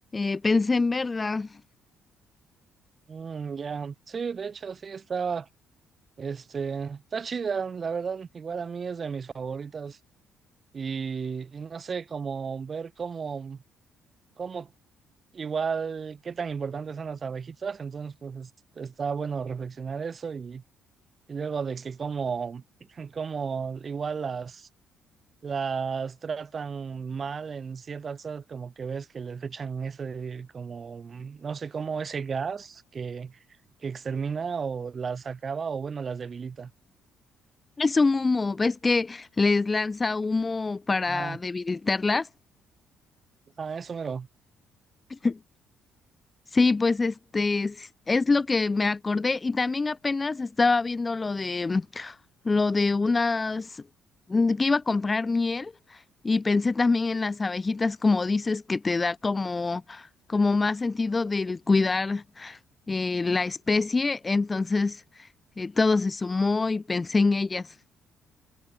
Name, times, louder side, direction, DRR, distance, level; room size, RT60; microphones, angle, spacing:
voice 1, 0.1-1.6 37.8-42.3 45.1-45.4 46.5-52.2 52.4-53.8 54.3-62.6 62.9-65.3 65.6-67.7, left 3 dB, 25° left, 1.7 m, -25 dB
voice 2, 3.1-5.5 6.2-10.0 10.7-13.6 14.4-14.7 15.3-18.5 18.8-20.6 21.3-22.6 22.9-24.7 25.4-33.4 33.8-36.7 41.1-41.4 43.6-44.3, right 6 dB, 35° right, 5.8 m, -33 dB
cardioid pair, 100°, 0 cm